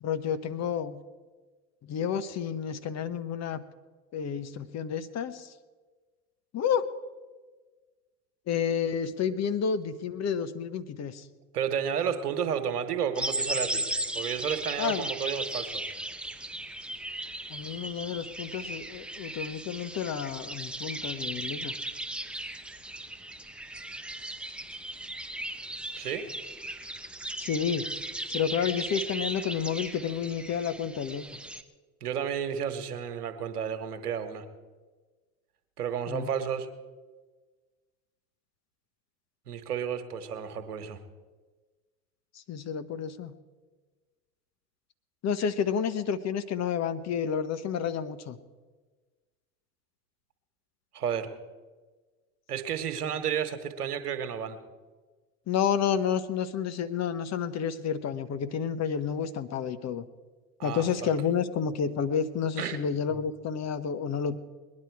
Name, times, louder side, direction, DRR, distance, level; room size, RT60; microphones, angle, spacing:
voice 1, 0.0-1.0 1.8-3.6 4.1-5.5 6.5-6.9 8.5-11.2 14.8-15.1 17.5-21.7 27.4-27.9 28.3-31.2 36.1-36.3 42.5-43.4 45.2-48.4 55.5-60.0 60.6-64.4, left 7 dB, 35° left, 12 dB, 1.0 m, -30 dB
voice 2, 11.5-13.8 14.1-15.9 26.0-26.2 32.0-34.4 35.8-36.7 39.5-41.0 50.9-51.3 52.5-54.6 60.6-61.1 62.6-62.8 63.1-63.2, right 8 dB, 85° right, 8 dB, 1.5 m, -32 dB
sound 1, 13.1-31.6, right 1 dB, ahead, 0.8 m, -37 dB
20.5 x 10.5 x 4.7 m, 1.3 s
hypercardioid pair, 85°, 45 cm